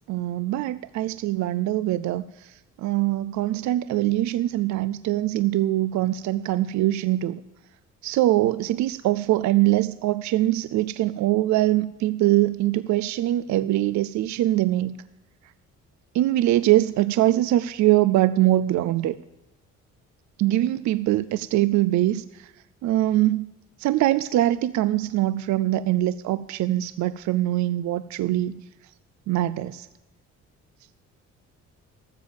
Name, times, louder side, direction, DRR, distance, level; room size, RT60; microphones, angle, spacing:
voice 1, 0.1-7.4 8.0-15.0 16.1-19.2 20.4-22.5 22.8-23.5 23.8-28.6 29.3-29.9, right 15 dB, 70° right, 15 dB, 0.4 m, -23 dB
13.5 x 7.2 x 7.3 m, 0.93 s
cardioid pair, 90°, 30 cm